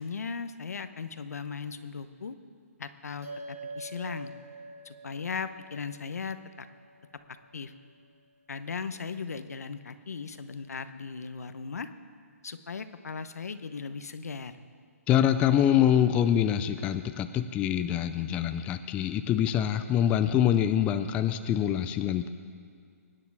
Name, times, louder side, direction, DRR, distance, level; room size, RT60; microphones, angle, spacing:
voice 1, 0.0-2.4 2.8-4.3 4.8-6.7 7.5-7.7 8.5-11.9 12.4-14.5, left 5 dB, 80° left, 11 dB, 1.0 m, -37 dB
sound 1, 3.2-7.9, right 2 dB, 80° right, 4.2 m, -46 dB
voice 2, 15.1-22.3, left 10 dB, 15° left, 9 dB, 0.4 m, -25 dB
23.5 x 9.9 x 4.8 m, 2.1 s
hypercardioid pair, 150°, 8 cm